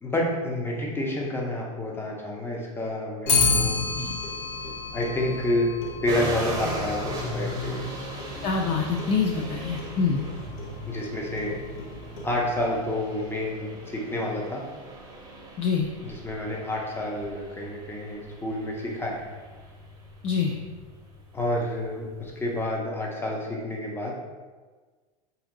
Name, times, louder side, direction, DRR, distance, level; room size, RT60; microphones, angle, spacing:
voice 1, 0.0-3.8 4.9-5.7 6.0-7.9 10.8-11.5 12.2-14.6 16.0-19.3 21.3-24.1, left 1 dB, 10° left, -2 dB, 0.7 m, -29 dB
Clock, 3.3-12.6, left 4 dB, 65° left, 0.8 m, -31 dB
sound 1, 6.1-22.6, right 1 dB, 20° right, 0.8 m, -39 dB
voice 2, 8.4-10.2 15.6-15.9 20.2-20.6, left 5 dB, 35° left, 1 dB, 0.4 m, -25 dB
2.8 x 2.6 x 3.7 m, 1.4 s
hypercardioid pair, 100°, 19 cm